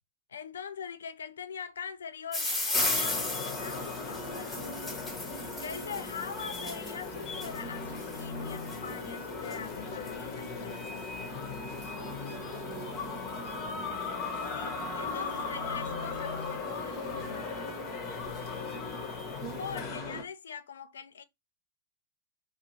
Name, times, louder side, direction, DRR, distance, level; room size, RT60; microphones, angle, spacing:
voice 1, 0.3-5.0 5.6-11.3 14.3-17.6 19.2-21.2, left 7 dB, 70° left, 0.3 m, -43 dB
sound 1, 2.3-15.5 16.4-16.8 17.4-17.5 17.7-17.8 18.1-19.4, left 2 dB, 10° left, 1.1 m, -38 dB
sound 2, 2.7-20.2, left 4 dB, 40° left, 0.9 m, -37 dB
sound 3, 2.8-19.1, right 7 dB, 60° right, 1.0 m, -54 dB
voice 2, 11.8-13.7 19.4-19.6, right 11 dB, 40° right, 0.4 m, -48 dB
2.6 x 2.3 x 2.9 m
figure-of-eight pair, 95°, 0 cm